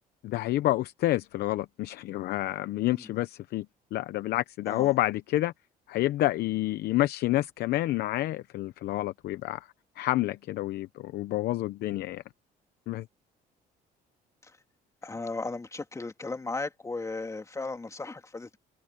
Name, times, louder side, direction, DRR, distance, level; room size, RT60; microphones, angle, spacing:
voice 1, 0.2-3.7 3.9-5.5 5.9-9.7 10.0-12.2 12.9-13.1, left 16 dB, 70° left, 0.8 m, -29 dB
voice 2, 15.0-18.6, left 3 dB, 20° left, 2.9 m, -36 dB
cardioid pair, 110°, 17 cm